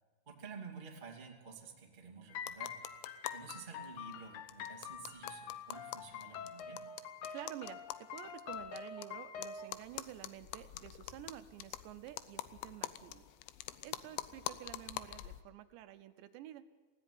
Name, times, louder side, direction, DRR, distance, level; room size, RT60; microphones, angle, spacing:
voice 1, 0.2-2.8 3.3-6.8, right 5 dB, 35° right, 1 dB, 0.8 m, -51 dB
sound 1, 2.3-9.7, left 6 dB, 70° left, 2.2 m, -46 dB
sound 2, 2.4-3.6 3.8-4.1 4.5-9.1 9.4-15.4, left 15 dB, 85° left, 3.2 m, -45 dB
voice 2, 7.3-13.3 13.8-16.7, right 13 dB, 80° right, 11 dB, 2.8 m, -50 dB
17.5 x 16.0 x 9.2 m, 1.4 s
omnidirectional pair, 5.3 m